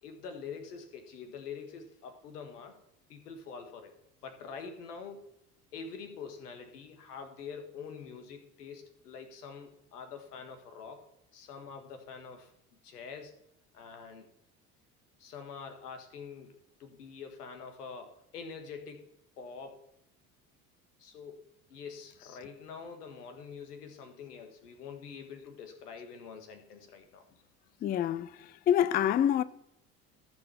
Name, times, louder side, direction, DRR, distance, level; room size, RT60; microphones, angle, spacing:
voice 1, 0.0-2.8 3.1-3.9 4.2-5.2 5.7-11.1 11.3-12.5 12.8-13.4 13.7-14.3 15.2-19.1 19.4-19.8 21.0-27.2, left 5 dB, 80° left, 1.6 m, -45 dB
voice 2, 27.8-29.4, left 10 dB, 20° left, 0.3 m, -27 dB
14.0 x 4.7 x 5.6 m
hypercardioid pair, 65°, 46 cm